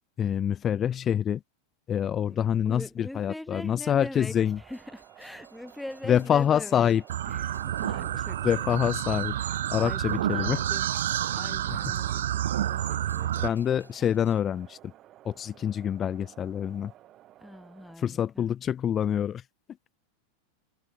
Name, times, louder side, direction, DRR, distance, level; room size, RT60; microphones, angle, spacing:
voice 1, 0.2-1.4 1.9-4.6 6.1-7.0 8.4-9.3 9.7-10.6 11.7-11.8 13.4-14.8 15.2-16.9 18.0-19.4, left 9 dB, 25° left, 0.4 m, -26 dB
voice 2, 2.6-7.0 7.3-8.8 9.4-10.9 11.3-12.3 12.6-13.6 17.4-18.5, left 1 dB, 5° left, 1.1 m, -42 dB
sound 1, 4.3-18.0, right 13 dB, 35° right, 5.6 m, -53 dB
Train, 4.7-14.4, equal, 90° right, 3.5 m, -59 dB
sound 2, 7.1-13.5, right 12 dB, 60° right, 0.3 m, -29 dB
figure-of-eight pair, 90°, 0 cm